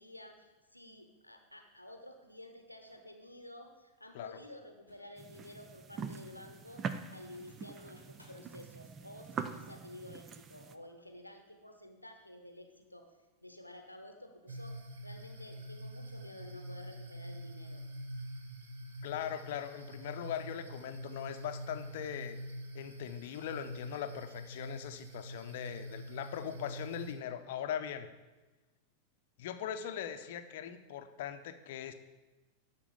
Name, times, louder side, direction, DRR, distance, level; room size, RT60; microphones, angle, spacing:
voice 1, 0.0-6.8 7.1-13.1 13.4-17.8, left 1 dB, 85° left, 5 dB, 0.9 m, -52 dB
sound 1, 2.9-3.1 4.4-5.7 6.1-6.2 6.7-8.4, left 1 dB, 90° right, 3.0 m, -64 dB
sound 2, 5.2-10.8, right 6 dB, 25° right, 0.6 m, -43 dB
sound 3, 14.5-27.1, equal, 65° right, 1.1 m, -45 dB
voice 2, 19.0-22.4 22.7-28.1 29.4-31.9, left 9 dB, 55° left, 9 dB, 0.7 m, -40 dB
12.0 x 4.5 x 7.2 m, 1.2 s
figure-of-eight pair, 90°, 0 cm